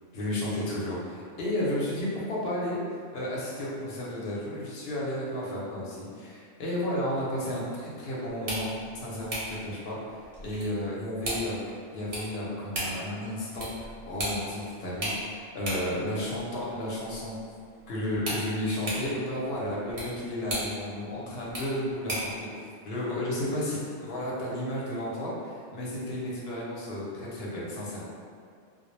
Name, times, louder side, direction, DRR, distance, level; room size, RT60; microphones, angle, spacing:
voice 1, 0.1-2.8 3.1-8.7 9.0-10.0 10.4-17.4 17.9-22.5 22.8-28.1, left 1 dB, 60° left, -6 dB, 0.8 m, -32 dB
sound 1, 8.3-22.4, right 1 dB, 45° right, 0.7 m, -38 dB
2.2 x 2.0 x 3.1 m, 2.2 s
omnidirectional pair, 1.3 m